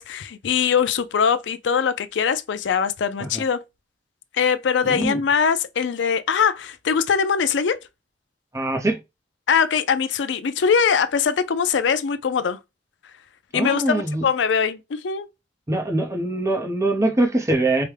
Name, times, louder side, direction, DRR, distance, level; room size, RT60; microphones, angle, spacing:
voice 1, 0.0-3.6 4.3-7.8 9.5-12.6 13.5-15.3, left 6 dB, 70° left, 0.4 m, -22 dB
voice 2, 4.8-5.2 8.5-9.0 13.5-14.2 15.7-17.8, right 2 dB, 15° right, 0.7 m, -23 dB
4.8 x 2.1 x 3.2 m
head